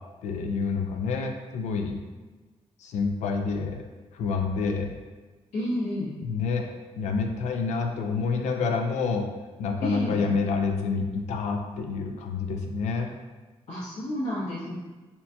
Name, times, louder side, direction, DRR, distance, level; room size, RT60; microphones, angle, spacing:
voice 1, 0.2-2.0 2.8-3.8 4.1-4.9 6.2-6.7 7.0-9.3 9.6-13.1, left 4 dB, 90° left, 4 dB, 0.4 m, -28 dB
voice 2, 5.5-6.1 9.8-10.2 13.7-14.7, left 1 dB, 70° left, -12 dB, 1.1 m, -30 dB
4.2 x 2.2 x 2.7 m, 1.3 s
cardioid pair, 130°, 12 cm